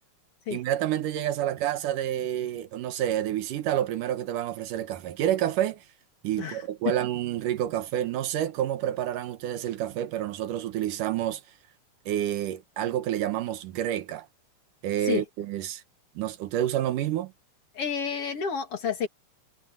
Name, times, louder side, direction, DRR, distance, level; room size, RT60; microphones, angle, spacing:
voice 1, 0.5-5.8 6.2-11.4 12.1-14.3 14.8-15.8 16.2-17.3, right 11 dB, 80° right, 2.7 m, -29 dB
voice 2, 17.7-19.1, left 6 dB, 50° left, 2.7 m, -30 dB
omnidirectional pair, 3.7 m